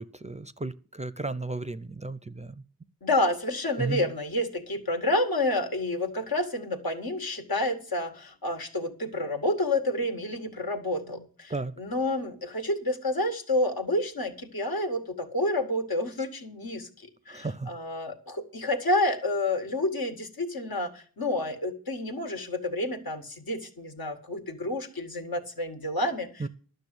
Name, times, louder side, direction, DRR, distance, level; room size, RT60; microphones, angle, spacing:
voice 1, 0.0-2.5 3.8-4.1 11.5-11.7 17.3-17.7 26.4-26.5, right 3 dB, 20° right, 0.5 m, -34 dB
voice 2, 3.0-26.5, left 1 dB, 75° left, 1.9 m, -29 dB
12.0 x 6.6 x 8.2 m
wide cardioid pair, 80°, 36 cm